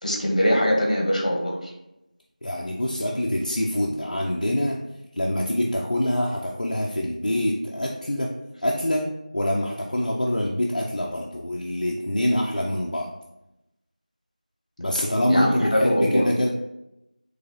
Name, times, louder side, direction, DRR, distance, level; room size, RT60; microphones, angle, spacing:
voice 1, 0.0-1.7 15.3-16.2, equal, 55° left, -1 dB, 1.1 m, -22 dB
voice 2, 2.4-4.8 5.1-8.4 8.6-13.1 14.8-16.5, left 1 dB, 75° left, -2 dB, 0.5 m, -25 dB
3.9 x 3.1 x 2.9 m, 0.90 s
figure-of-eight pair, 180°, 4 cm